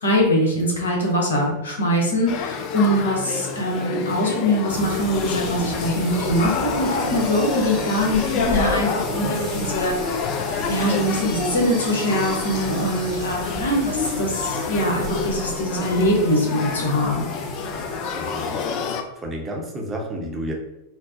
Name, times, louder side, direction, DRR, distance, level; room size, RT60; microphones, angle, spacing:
voice 1, 0.0-10.0 10.7-17.3, equal, 65° left, -1 dB, 0.9 m, -22 dB
Male speech man speaking / Child speech kid speaking / Conversation, 2.3-19.0, left 6 dB, 40° left, 0.3 m, -29 dB
sound 1, 4.7-18.9, right 1 dB, 20° left, 1.3 m, -33 dB
voice 2, 18.2-18.6 19.2-20.5, right 1 dB, 15° right, 0 dB, 0.7 m, -31 dB
4.3 x 2.0 x 2.5 m, 0.91 s
figure-of-eight pair, 90°, 0 cm